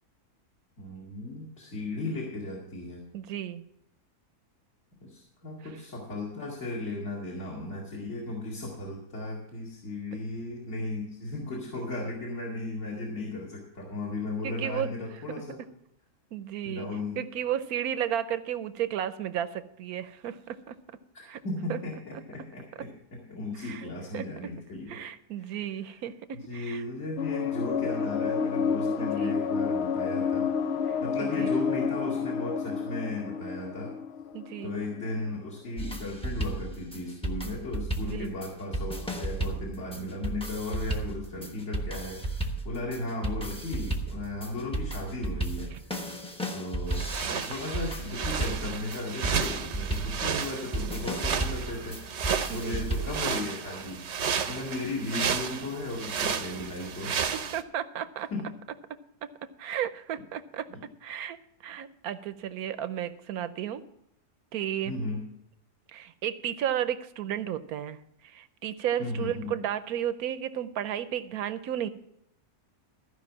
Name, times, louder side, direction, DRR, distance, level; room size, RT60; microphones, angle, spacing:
voice 1, 0.8-3.1 5.0-15.6 16.6-17.2 21.1-25.0 25.4-25.6 26.3-30.5 31.0-33.9 34.6-45.7 46.5-54.1 54.5-57.3 58.3-58.5 60.7-60.8 64.8-65.3 69.0-69.5, left 2 dB, 45° left, -4 dB, 2.6 m, -36 dB
voice 2, 3.1-3.6 14.4-14.9 16.3-16.9 17.2-20.8 21.2-21.4 21.7-21.8 23.6-24.3 24.9-26.1 26.5-26.8 29.0-29.4 30.9-31.5 34.3-34.7 38.0-38.3 45.7-45.8 52.5-52.9 57.0-57.2 57.5-58.3 58.9-59.3 59.6-60.7 61.0-61.4 61.6-63.8 64.5-64.9 65.9-68.0 68.2-71.9, right 10 dB, 70° right, 12 dB, 1.1 m, -33 dB
Cool Ambient Tones, 27.2-35.3, left 6 dB, 80° left, 0.5 m, -29 dB
sound 1, 35.8-53.3, right 2 dB, 5° left, 0.8 m, -34 dB
sound 2, 46.9-57.6, right 7 dB, 55° right, 0.9 m, -33 dB
14.5 x 5.5 x 7.2 m, 0.76 s
omnidirectional pair, 1.7 m